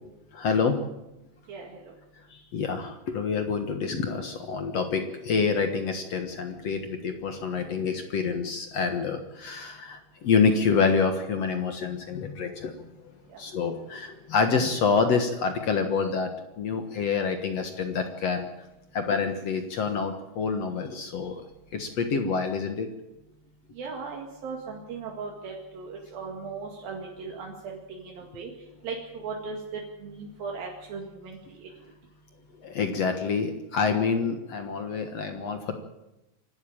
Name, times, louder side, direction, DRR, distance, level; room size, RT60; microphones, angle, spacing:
voice 1, 0.3-0.8 2.3-12.9 13.4-16.3 16.6-18.5 18.9-21.4 21.7-22.9 32.6-35.8, left 5 dB, 55° left, 6 dB, 2.1 m, -27 dB
voice 2, 23.8-28.5 28.8-31.7, right 4 dB, 75° right, -1 dB, 3.9 m, -38 dB
26.0 x 12.5 x 8.9 m, 0.95 s
omnidirectional pair, 4.2 m